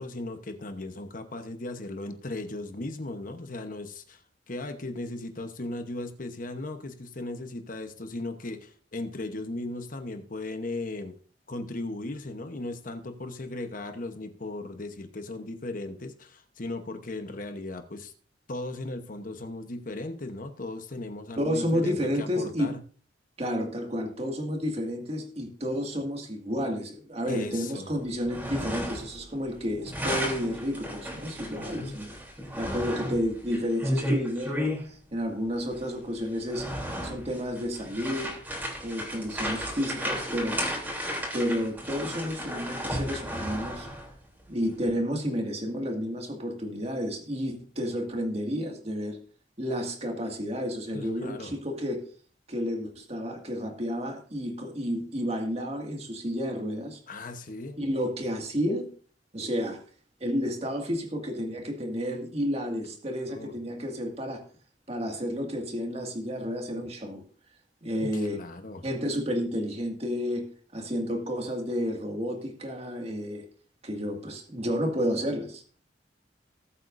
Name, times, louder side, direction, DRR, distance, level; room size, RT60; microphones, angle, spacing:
voice 1, 0.0-11.1 11.5-18.1 18.5-22.8 27.2-27.9 31.6-32.0 50.9-51.6 57.1-57.8 63.3-63.5 66.4-66.5 68.0-68.8, left 2 dB, 45° left, 7 dB, 1.0 m, -37 dB
voice 2, 21.4-22.7 23.4-32.1 32.6-36.7 37.0-38.3 38.8-40.6 41.3-43.9 44.5-49.2 49.6-52.0 52.5-57.0 57.8-58.9 59.3-59.8 60.2-64.4 64.9-67.2 67.8-68.4 68.8-73.4 73.8-75.8, equal, 35° right, 2 dB, 2.1 m, -31 dB
sound 1, 28.1-29.2 29.5-34.8 35.7-35.8 36.3-44.1, equal, 10° right, 3.2 m, -33 dB
19.0 x 8.1 x 2.6 m, 0.43 s
head